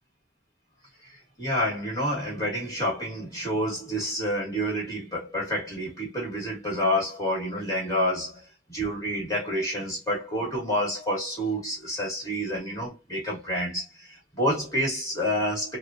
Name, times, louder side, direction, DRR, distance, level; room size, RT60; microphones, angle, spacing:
voice 1, 1.0-15.8, equal, 15° left, 1.2 m, -29 dB
3.1 x 2.1 x 2.4 m
head